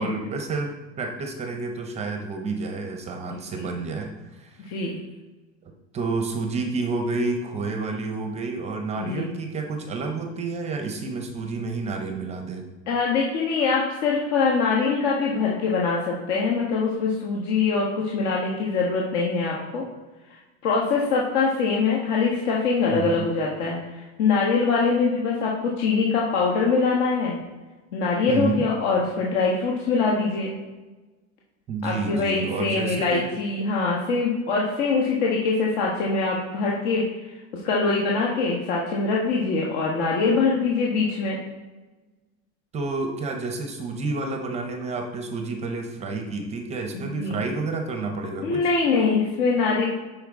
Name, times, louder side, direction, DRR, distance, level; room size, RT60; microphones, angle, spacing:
voice 1, 0.0-4.7 5.9-12.6 22.9-23.2 28.3-28.7 31.7-33.3 42.7-48.6, right 3 dB, 20° right, 4 dB, 0.5 m, -29 dB
voice 2, 4.7-5.0 9.0-9.3 12.9-19.8 20.6-23.8 24.2-27.4 27.9-30.5 31.8-37.0 37.5-41.4 46.9-47.4 48.4-49.9, left 4 dB, 60° left, -3 dB, 1.4 m, -23 dB
8.6 x 5.6 x 3.6 m, 1.2 s
supercardioid pair, 165°, 37 cm